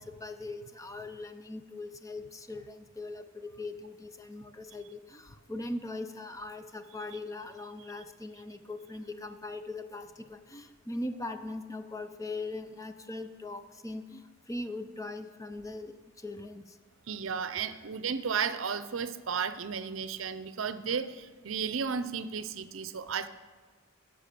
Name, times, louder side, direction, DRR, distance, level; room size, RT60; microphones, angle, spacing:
voice 1, 0.0-16.8, left 2 dB, 15° left, 8 dB, 0.6 m, -40 dB
voice 2, 17.1-23.3, right 6 dB, 70° right, 13 dB, 0.6 m, -33 dB
15.0 x 6.2 x 6.8 m, 1.4 s
head